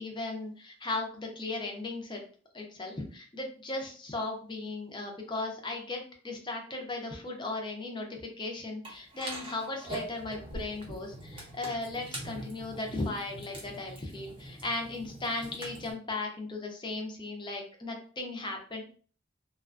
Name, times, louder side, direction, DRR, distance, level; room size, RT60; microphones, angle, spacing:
voice 1, 0.0-2.2 2.5-18.8, left 2 dB, 25° left, 2 dB, 0.5 m, -37 dB
sound 1, 8.8-15.9, right 1 dB, 25° right, 0.7 m, -43 dB
sound 2, 10.5-11.0, equal, 75° right, 0.6 m, -41 dB
2.4 x 2.2 x 2.4 m, 0.42 s
head